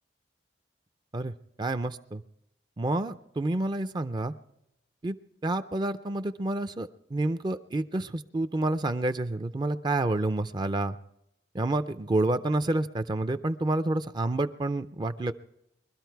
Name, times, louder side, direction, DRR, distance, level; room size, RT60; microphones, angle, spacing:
voice 1, 1.6-2.2 2.8-4.3 5.0-5.2 5.4-11.0 11.5-15.3, right 2 dB, 25° right, 11 dB, 0.5 m, -29 dB
22.5 x 13.0 x 4.6 m, 0.83 s
head